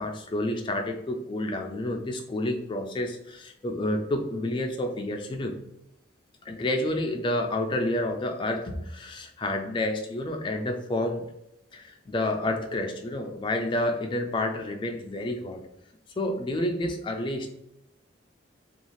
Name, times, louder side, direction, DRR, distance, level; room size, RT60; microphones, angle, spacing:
voice 1, 0.0-5.5 6.5-11.2 11.7-15.6 16.2-17.5, left 1 dB, 25° left, 4 dB, 0.3 m, -29 dB
2.6 x 2.4 x 3.1 m, 0.83 s
head